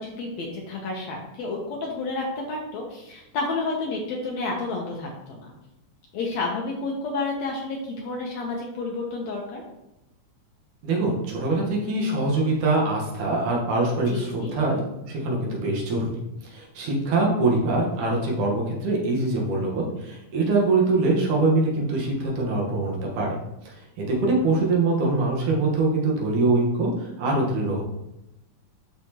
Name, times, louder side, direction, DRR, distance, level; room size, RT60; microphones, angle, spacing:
voice 1, 0.0-5.5 6.1-9.6 14.1-14.5, left 3 dB, 65° left, 0 dB, 1.9 m, -30 dB
voice 2, 10.8-16.1 16.5-23.4 23.6-27.8, right 2 dB, 70° right, -2 dB, 2.8 m, -23 dB
12.0 x 4.1 x 2.9 m, 0.88 s
omnidirectional pair, 3.8 m